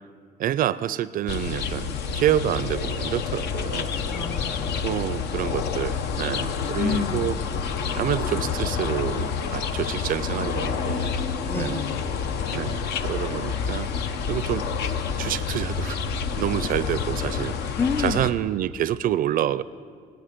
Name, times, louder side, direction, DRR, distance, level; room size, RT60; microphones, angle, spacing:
voice 1, 0.4-3.9 4.8-7.4 8.0-11.1 11.5-11.8 12.5-13.9 14.3-14.6 15.2-16.0 16.4-17.6 18.0-19.6, right 11 dB, 55° right, 18 dB, 0.4 m, -27 dB
sound 1, 1.3-18.3, left 6 dB, 80° left, 0.9 m, -28 dB
voice 2, 4.1-4.9 6.7-7.6 11.5-12.3 17.8-18.3, left 5 dB, 15° left, 11 dB, 0.4 m, -30 dB
26.5 x 9.9 x 5.1 m, 2.1 s
cardioid pair, 110°, 17 cm